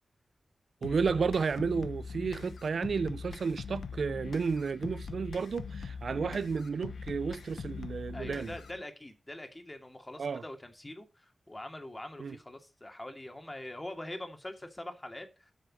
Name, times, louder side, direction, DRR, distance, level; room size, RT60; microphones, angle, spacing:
sound 1, 0.8-8.8, left 5 dB, 85° left, 0.9 m, -42 dB
voice 1, 0.8-8.5 10.2-10.4 12.2-12.4, right 5 dB, 75° right, 0.4 m, -32 dB
voice 2, 8.1-15.5, left 1 dB, 20° left, 2.5 m, -44 dB
8.6 x 6.5 x 6.3 m
wide cardioid pair, 75°, 0 cm